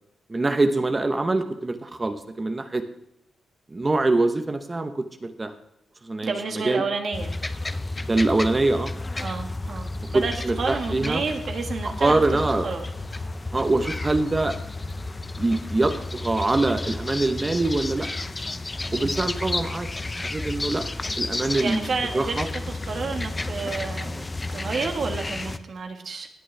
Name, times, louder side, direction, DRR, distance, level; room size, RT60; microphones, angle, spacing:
voice 1, 0.3-2.8 3.7-5.5 6.0-6.8 8.0-8.9 10.1-11.2 12.0-12.7 13.5-14.5 15.4-15.9 16.2-18.1 18.9-19.9 20.2-20.8 21.1-21.8 22.1-22.5, right 2 dB, 25° right, 8 dB, 0.8 m, -24 dB
voice 2, 6.2-7.4 9.2-12.8 19.0-19.3 21.6-24.2 24.5-26.3, right 4 dB, 55° right, 4 dB, 1.4 m, -30 dB
sound 1, 7.1-25.6, left 2 dB, 20° left, 0.6 m, -32 dB
17.5 x 8.5 x 3.3 m, 0.80 s
cardioid pair, 115°, 0 cm